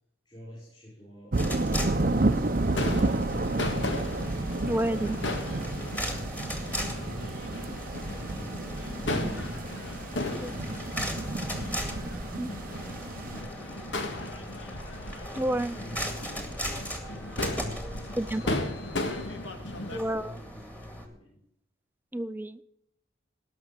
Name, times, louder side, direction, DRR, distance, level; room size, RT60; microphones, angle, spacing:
voice 1, 0.2-4.0 4.7-11.3 11.7-14.8 15.5-19.2 19.6-21.4, equal, 25° left, -5 dB, 6.2 m, -49 dB
sound 1, 1.3-13.4, right 2 dB, 45° right, 0.7 m, -31 dB
sound 2, 1.4-21.1, equal, 10° left, 2.1 m, -39 dB
Crowd / Fireworks, 2.7-20.0, left 2 dB, 70° left, 1.8 m, -36 dB
voice 2, 4.7-5.2 10.4-10.5 12.4-12.5 15.4-15.8 18.2-18.5 19.9-20.4 22.1-22.6, right 1 dB, 10° right, 14 dB, 0.5 m, -29 dB
18.5 x 6.3 x 7.4 m, 0.76 s
head